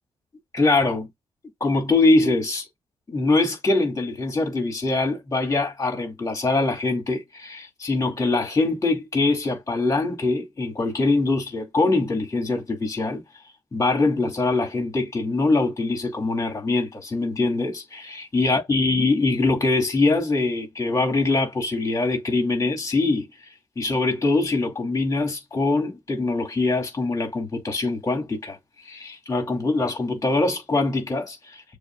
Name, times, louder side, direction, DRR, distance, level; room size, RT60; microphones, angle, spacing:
voice 1, 0.5-1.1 1.6-2.7 3.1-13.2 13.7-23.3 23.8-28.6 28.9-31.6, left 3 dB, 30° left, 2.5 m, -23 dB
6.9 x 2.7 x 2.5 m
cardioid pair, 110°, 11 cm